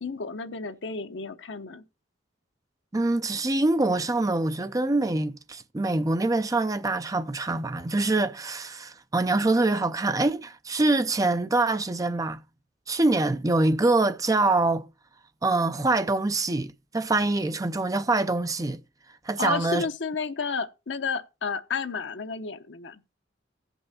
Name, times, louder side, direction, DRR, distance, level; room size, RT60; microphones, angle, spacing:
voice 1, 0.0-1.8 19.4-23.0, left 5 dB, 70° left, 0.8 m, -32 dB
voice 2, 2.9-12.4 12.9-14.9 15.4-18.8 19.3-19.9, right 2 dB, 20° right, 0.5 m, -25 dB
15.0 x 5.4 x 4.1 m
head